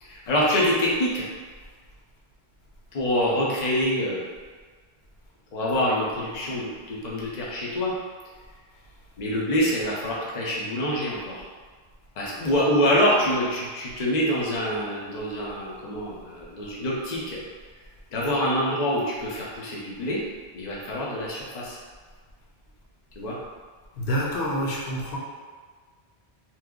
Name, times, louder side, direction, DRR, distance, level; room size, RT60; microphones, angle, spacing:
voice 1, 0.0-1.3 2.9-4.3 5.5-7.9 9.2-11.4 12.2-17.4 18.1-20.2 20.5-21.8 23.2-23.4, equal, 45° left, -5 dB, 0.7 m, -25 dB
voice 2, 24.0-25.2, equal, 80° left, -4 dB, 0.9 m, -27 dB
2.9 x 2.0 x 3.6 m, 1.5 s
omnidirectional pair, 1.0 m